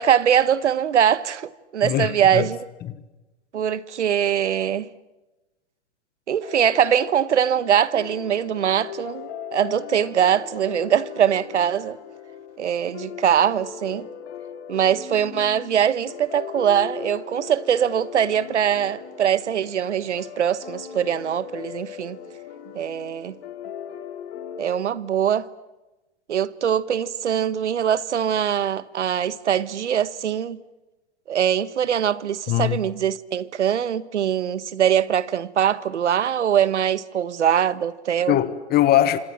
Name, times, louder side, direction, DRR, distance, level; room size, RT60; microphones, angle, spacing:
voice 1, 0.0-2.6 3.5-4.9 6.3-12.0 12.6-14.1 14.7-22.2 22.7-23.3 24.6-25.5 26.3-30.6 31.3-38.4, right 9 dB, 90° right, 1.3 m, -22 dB
voice 2, 1.8-2.4 2.9-3.0 32.5-32.8 38.3-39.2, left 13 dB, 30° left, 1.5 m, -21 dB
sound 1, 6.4-24.7, left 8 dB, 60° left, 4.0 m, -39 dB
28.0 x 26.5 x 7.4 m
hypercardioid pair, 130°, 34 cm